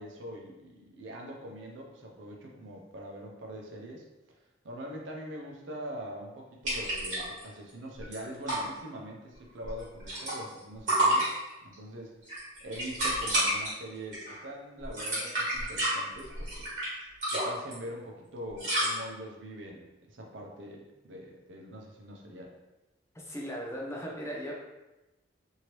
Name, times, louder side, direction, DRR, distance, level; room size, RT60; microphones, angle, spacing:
voice 1, 0.0-4.0 4.6-11.3 11.6-12.1 12.6-16.7 17.3-22.5, equal, 70° right, 0 dB, 0.6 m, -43 dB
sound 1, 6.6-7.4 7.7-7.8 8.0-8.6 9.6-10.6 10.9-11.7 12.2-13.7 14.1-14.4 14.8-16.9 17.2-17.7 18.6-18.9, right 1 dB, 40° right, 1.4 m, -29 dB
voice 2, 23.1-24.5, equal, 15° left, -3 dB, 0.4 m, -37 dB
3.1 x 2.7 x 2.9 m, 1.0 s
head